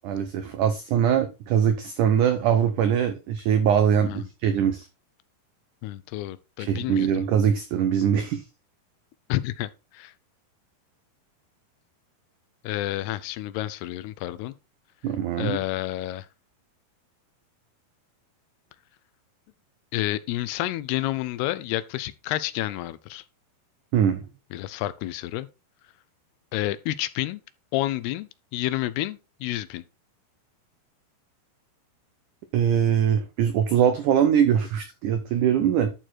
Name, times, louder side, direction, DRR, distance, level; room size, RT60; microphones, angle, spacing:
voice 1, 0.0-4.9 6.6-8.4 15.0-15.6 23.9-24.2 32.5-35.9, right 8 dB, 85° right, 1.8 m, -22 dB
voice 2, 5.8-7.2 9.3-10.1 12.6-14.5 15.4-16.3 19.9-23.2 24.5-25.5 26.5-27.4 27.7-29.8, left 15 dB, 80° left, 2.6 m, -30 dB
11.5 x 4.6 x 4.3 m
omnidirectional pair, 4.7 m